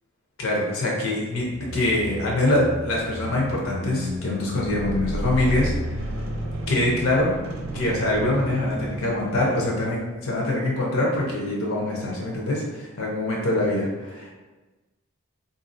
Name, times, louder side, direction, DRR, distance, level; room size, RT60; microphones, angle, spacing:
voice 1, 0.4-6.0 6.7-7.4 7.7-14.3, left 1 dB, 75° left, -3 dB, 0.8 m, -24 dB
sound 1, 1.4-10.2, right 1 dB, 75° right, 0.6 m, -32 dB
4.2 x 2.6 x 2.6 m, 1.2 s
head